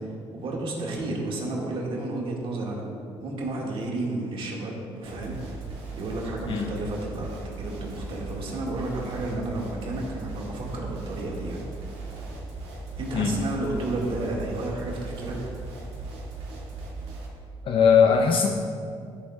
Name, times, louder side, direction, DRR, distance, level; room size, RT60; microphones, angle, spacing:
voice 1, 0.0-2.8 3.2-5.6 5.9-11.6 13.0-15.4, right 2 dB, 55° right, -2 dB, 2.0 m, -32 dB
sound 1, 5.0-17.3, right 3 dB, 75° right, 2.1 m, -38 dB
voice 2, 6.5-6.8 13.1-13.4 17.6-18.5, left 6 dB, 55° left, 3 dB, 0.6 m, -20 dB
12.5 x 6.9 x 2.4 m, 2.4 s
cardioid pair, 90°, 11 cm